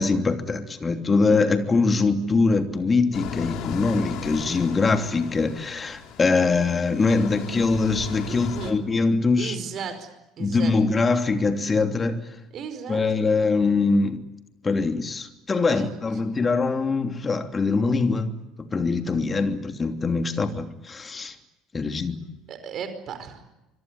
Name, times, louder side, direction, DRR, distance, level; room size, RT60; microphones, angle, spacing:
voice 1, 0.0-9.5 10.4-12.2 12.9-14.2 14.6-21.3 21.7-22.2, left 4 dB, 25° left, 3.0 m, -23 dB
sound 1, 3.1-8.7, left 7 dB, 55° left, 3.5 m, -36 dB
voice 2, 8.2-8.8 9.4-10.1 10.4-10.7 12.5-13.2 15.7-16.0 16.3-16.4 22.5-23.4, right 7 dB, 45° right, 5.0 m, -35 dB
25.5 x 23.0 x 9.7 m
figure-of-eight pair, 65°, 0 cm